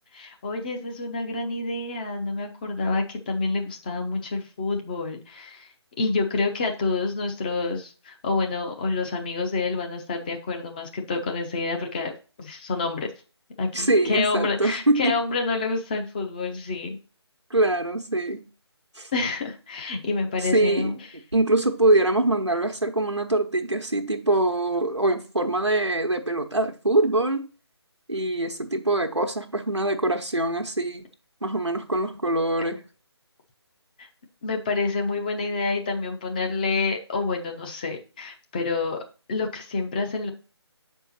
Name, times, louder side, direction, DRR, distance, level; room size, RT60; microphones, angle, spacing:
voice 1, 0.1-5.6 6.0-12.1 12.4-13.1 13.6-17.0 19.1-21.0 34.0-34.1 34.4-39.0 39.3-40.3, left 3 dB, 20° left, 0.7 m, -28 dB
voice 2, 13.7-15.2 17.5-18.5 18.9-19.1 20.5-20.9 21.3-27.5 28.1-31.1 31.4-32.8, right 2 dB, 90° right, 1.0 m, -23 dB
7.1 x 4.5 x 4.1 m
figure-of-eight pair, 150°, 14 cm